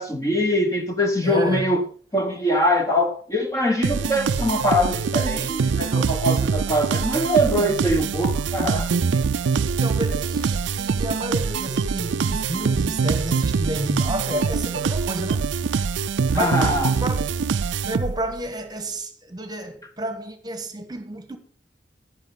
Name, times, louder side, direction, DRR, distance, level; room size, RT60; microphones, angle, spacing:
voice 1, 0.0-1.8 2.1-8.9 16.3-17.0, equal, 15° left, 1.3 m, -23 dB
voice 2, 1.2-1.7 9.1-9.3 9.6-15.5 16.3-17.3 17.8-21.4, right 1 dB, 20° right, 1.4 m, -30 dB
sound 1, 3.8-18.4, right 5 dB, 85° right, 0.4 m, -24 dB
11.0 x 9.2 x 3.9 m
head